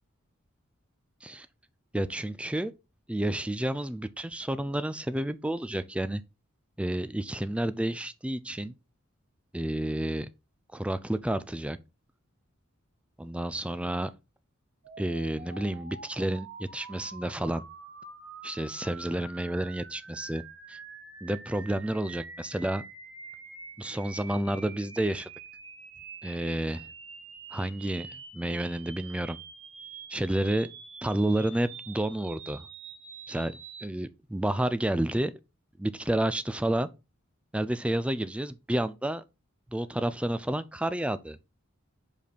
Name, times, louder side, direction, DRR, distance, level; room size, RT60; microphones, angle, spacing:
voice 1, 1.9-2.7 3.1-6.2 6.8-8.7 9.5-10.3 10.7-11.8 13.2-14.1 15.0-17.6 18.4-20.4 20.7-20.8 21.2-22.8 23.8-25.3 26.2-26.9 27.5-29.4 30.1-30.7 31.0-32.7 33.3-33.5 33.8-35.3 35.8-36.9 37.5-39.2 39.7-41.4, right 1 dB, 5° right, 0.3 m, -30 dB
sound 1, 14.8-33.9, right 5 dB, 65° right, 1.6 m, -46 dB
5.2 x 5.2 x 4.2 m
head